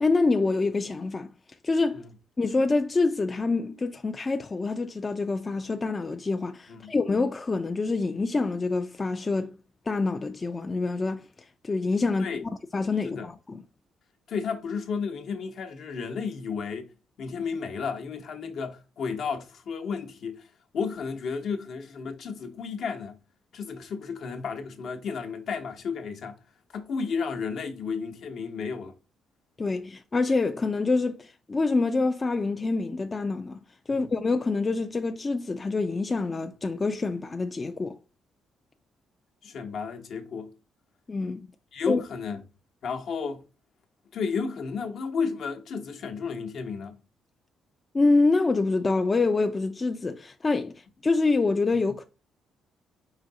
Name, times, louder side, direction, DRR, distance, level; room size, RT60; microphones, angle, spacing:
voice 1, 0.0-1.3 1.6-2.0 2.4-9.5 9.9-11.3 11.6-12.3 12.7-13.6 29.6-33.6 33.9-38.0 41.1-41.5 41.9-42.0 47.9-52.0, left 3 dB, 30° left, 0.4 m, -26 dB
voice 2, 14.3-16.9 17.2-20.5 20.7-23.2 23.5-26.4 26.7-28.9 33.9-34.1 39.4-40.5 41.7-42.4 42.8-43.4 44.1-47.0, left 5 dB, 65° left, 0.9 m, -32 dB
5.0 x 2.7 x 3.9 m
cardioid pair, 90°, 0 cm